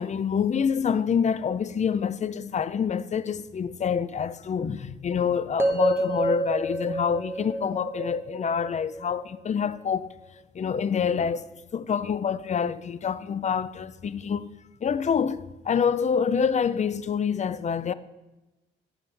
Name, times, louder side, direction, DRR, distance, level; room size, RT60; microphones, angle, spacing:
voice 1, 0.0-10.1 10.5-11.4 11.7-14.5 14.8-17.9, left 7 dB, 35° left, 0.5 m, -26 dB
sound 1, 5.6-9.7, right 1 dB, 10° right, 1.7 m, -28 dB
18.5 x 8.7 x 3.4 m
cardioid pair, 90°, 20 cm